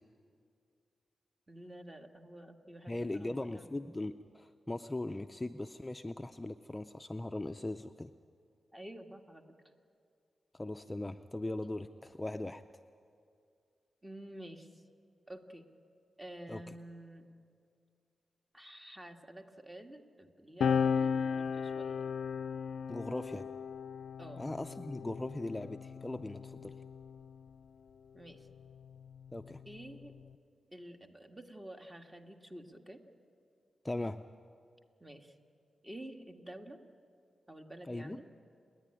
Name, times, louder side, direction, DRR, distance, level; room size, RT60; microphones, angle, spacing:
voice 1, 1.5-3.7 8.7-9.6 14.0-14.8 15.3-15.6 16.2-17.3 18.5-22.1 24.2-24.5 28.1-28.5 29.7-30.1 30.7-33.0 35.0-35.4 35.8-36.8 37.5-38.3, right 1 dB, 15° right, 4 dB, 1.8 m, -50 dB
voice 2, 2.9-8.1 10.5-12.6 16.5-16.6 22.9-23.5 24.4-26.8 29.3-29.6 33.8-34.2 37.9-38.2, left 2 dB, 20° left, 8 dB, 0.5 m, -39 dB
sound 1, 20.6-27.5 28.5-30.3, left 6 dB, 85° left, 0.4 m, -36 dB
29.5 x 10.0 x 10.0 m, 2.3 s
cardioid pair, 70°, 0 cm